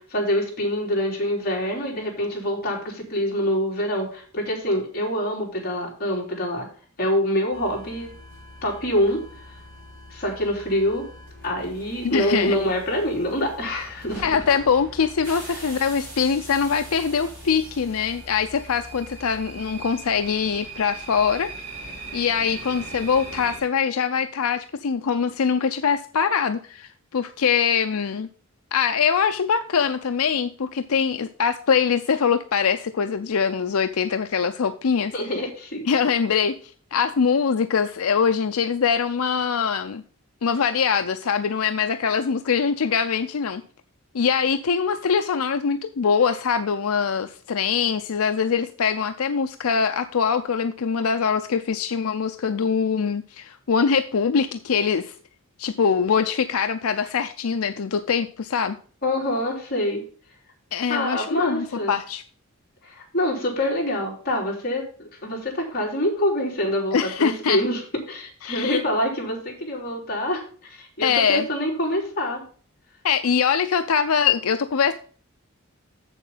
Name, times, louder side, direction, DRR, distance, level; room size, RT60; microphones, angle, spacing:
voice 1, 0.0-6.7 7.0-8.1 8.6-9.2 10.1-11.1 11.4-14.4 15.5-15.6 35.1-35.9 59.0-60.0 60.9-62.0 62.8-67.8 68.1-72.4, left 1 dB, 45° left, -2 dB, 3.5 m, -25 dB
sound 1, 7.5-23.6, right 2 dB, 45° right, 4.9 m, -41 dB
voice 2, 12.0-12.6 14.2-21.5 22.1-28.3 28.7-35.1 35.9-36.6 36.9-40.0 40.4-43.6 44.1-55.1 55.6-58.8 60.7-62.2 66.9-67.6 68.4-68.8 71.0-71.5 73.0-74.9, left 6 dB, 85° left, 9 dB, 0.5 m, -23 dB
7.4 x 7.0 x 5.5 m, 0.43 s
head